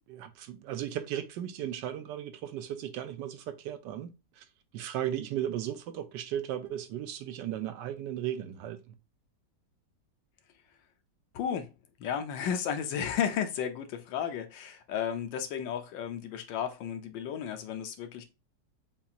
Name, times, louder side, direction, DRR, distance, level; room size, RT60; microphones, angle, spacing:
voice 1, 0.1-4.1 4.4-4.5 4.7-8.9, right 11 dB, 80° right, 1.2 m, -36 dB
voice 2, 11.3-11.7 12.0-18.2, left 8 dB, 90° left, 1.4 m, -33 dB
7.0 x 2.4 x 2.8 m
omnidirectional pair, 1.9 m